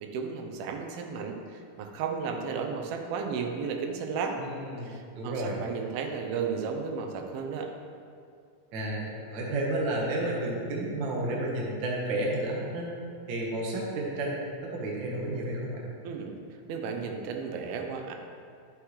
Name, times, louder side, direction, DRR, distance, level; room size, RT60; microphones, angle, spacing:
voice 1, 0.0-4.4 4.8-7.7 16.0-18.2, right 5 dB, 90° right, 3 dB, 2.6 m, -34 dB
voice 2, 4.4-5.6 8.7-12.9 13.3-15.9, right 1 dB, 60° right, -3 dB, 1.2 m, -31 dB
11.5 x 6.4 x 3.2 m, 2.4 s
omnidirectional pair, 4.3 m